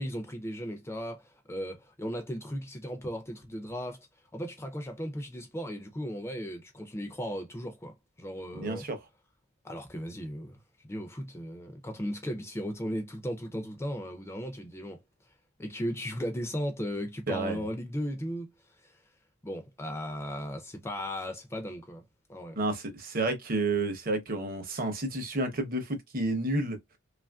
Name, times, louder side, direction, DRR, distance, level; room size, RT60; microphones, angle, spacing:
voice 1, 0.0-4.1 4.3-8.9 9.6-10.6 10.8-15.0 15.6-18.5 18.8-19.0 19.4-22.0 22.3-22.6, equal, 10° left, 0.4 m, -36 dB
voice 2, 8.5-9.0 17.3-17.6 22.6-26.8, right 2 dB, 40° right, 0.7 m, -30 dB
3.0 x 2.4 x 2.2 m
head